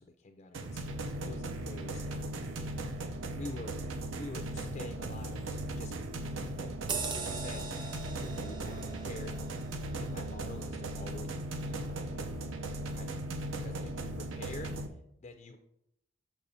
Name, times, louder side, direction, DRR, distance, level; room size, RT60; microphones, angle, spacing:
voice 1, 0.0-2.7 3.0-6.7 7.2-7.7 8.2-9.5 10.0-12.4 12.8-13.3 13.6-14.8 15.2-15.6, left 2 dB, 35° left, 5 dB, 0.4 m, -48 dB
sound 1, 0.5-14.9, right 1 dB, 85° right, 0.6 m, -38 dB
sound 2, 6.9-11.8 12.3-12.5, right 4 dB, 25° right, 0.4 m, -42 dB
6.8 x 5.9 x 2.7 m, 0.82 s
head